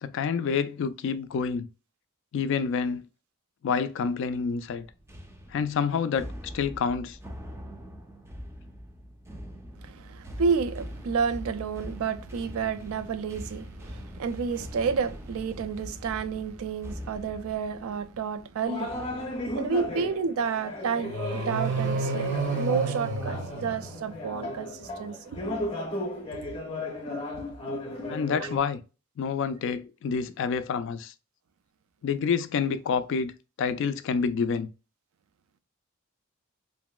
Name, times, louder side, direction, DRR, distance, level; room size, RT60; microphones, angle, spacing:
voice 1, 0.0-1.7 2.3-3.1 3.6-4.9 5.5-6.3 6.5-7.2 28.1-28.8 29.2-31.1 32.0-33.3 33.6-34.7, left 6 dB, 60° left, 0.3 m, -28 dB
sound 1, 4.7-21.2 21.6-21.9 22.6-23.1, equal, 10° right, 0.4 m, -43 dB
voice 2, 9.8-19.0 19.5-25.4 28.4-28.5, right 5 dB, 75° right, 0.3 m, -30 dB
sound 2, 18.7-28.6, left 1 dB, 25° left, 0.6 m, -35 dB
sound 3, 21.0-24.3, right 3 dB, 60° right, 0.8 m, -30 dB
3.0 x 2.6 x 2.2 m
head